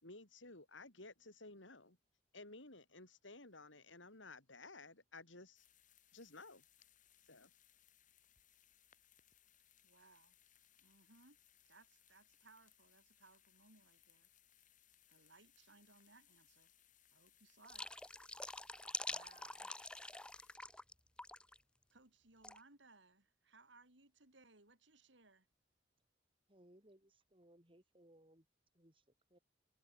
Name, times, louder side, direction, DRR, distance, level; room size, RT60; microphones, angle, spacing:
voice 1, 0.0-2.0 2.3-5.7 6.1-6.6 7.3-7.5, left 2 dB, 80° left, 6.0 m, -55 dB
sound 1, 5.6-20.6, left 11 dB, 45° left, 7.4 m, -71 dB
voice 2, 9.8-10.4 10.8-11.4 11.7-14.3 15.1-16.7 17.1-17.9 19.1-19.7 21.9-25.5, right 3 dB, 70° right, 5.2 m, -65 dB
sound 2, 17.6-20.9 21.2-21.6 22.4-22.6, left 2 dB, 5° left, 0.4 m, -46 dB
voice 3, 26.5-28.5 28.7-29.0 29.3-29.4, right 1 dB, 30° right, 5.5 m, -66 dB
head